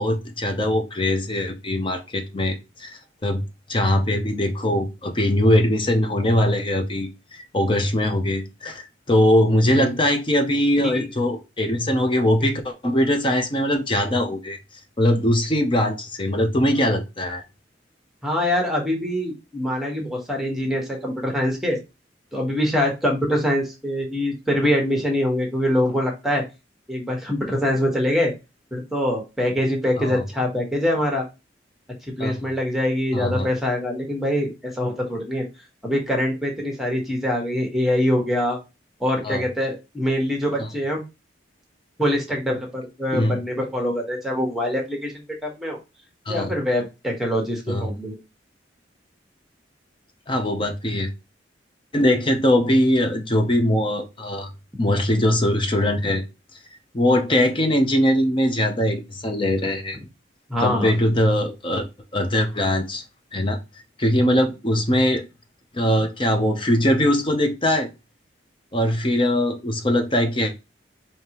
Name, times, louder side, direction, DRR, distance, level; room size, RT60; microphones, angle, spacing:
voice 1, 0.0-3.4 3.7-14.6 15.0-17.4 30.0-30.2 32.2-32.3 33.1-33.5 39.2-39.4 40.6-40.7 43.1-43.4 46.3-46.5 47.7-47.9 50.3-51.1 51.9-54.5 54.8-56.2 56.9-60.0 60.6-61.9 62.1-63.0 63.3-63.6 64.0-65.2 65.7-67.9 68.7-70.5, left 1 dB, 30° left, 0.7 m, -21 dB
voice 2, 18.2-21.8 22.3-26.4 26.9-28.3 28.7-31.2 32.1-35.4 35.8-38.6 39.0-41.0 42.0-45.8 46.3-48.2 60.5-60.9, left 1 dB, ahead, 1.3 m, -24 dB
5.0 x 2.8 x 2.9 m
head